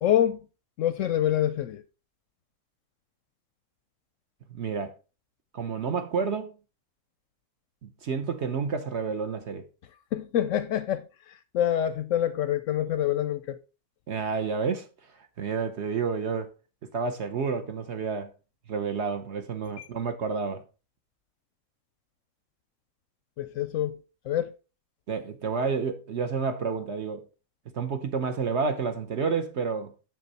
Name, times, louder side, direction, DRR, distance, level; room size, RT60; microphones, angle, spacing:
voice 1, 0.0-0.4 0.8-1.8 10.1-11.0 11.5-13.6 19.8-19.9 23.4-24.0 24.3-24.5, left 11 dB, 70° left, 0.8 m, -26 dB
voice 2, 4.5-4.9 5.5-6.5 8.0-9.6 14.1-14.9 15.4-16.5 16.9-18.3 18.7-20.6 25.1-27.2 27.7-29.9, right 5 dB, 55° right, 0.9 m, -29 dB
6.8 x 6.2 x 4.1 m
omnidirectional pair, 1.6 m